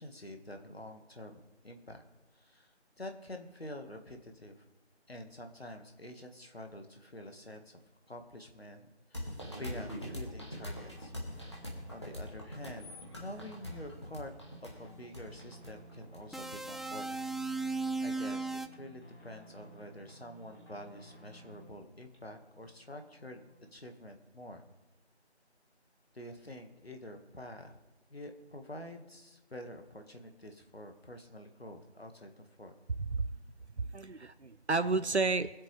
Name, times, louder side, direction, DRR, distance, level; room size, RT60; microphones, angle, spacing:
voice 1, 0.0-2.0 2.3-4.6 5.1-7.8 8.1-11.1 11.6-11.7 11.9-14.3 14.6-17.1 17.6-17.8 18.0-23.4 23.7-24.6 26.1-27.8 28.1-32.7, left 1 dB, 60° left, 5 dB, 1.7 m, -47 dB
sound 1, 9.1-16.7, equal, 25° left, 2.0 m, -42 dB
sound 2, 9.8-23.9, right 1 dB, 80° left, 3.8 m, -56 dB
sound 3, 16.3-18.7, right 3 dB, ahead, 0.3 m, -36 dB
voice 2, 33.8-35.5, right 3 dB, 75° right, 12 dB, 0.7 m, -31 dB
24.5 x 8.2 x 3.3 m, 1.1 s
figure-of-eight pair, 175°, 34 cm